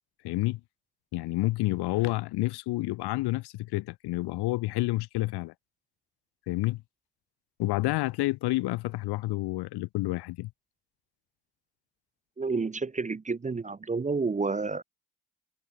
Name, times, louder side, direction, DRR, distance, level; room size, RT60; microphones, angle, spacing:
voice 1, 0.2-0.6 1.1-5.5 6.5-6.8 7.6-10.5, left 19 dB, 60° left, 0.6 m, -29 dB
voice 2, 12.4-14.8, right 4 dB, 15° right, 0.5 m, -30 dB
hypercardioid pair, 40°, 45 cm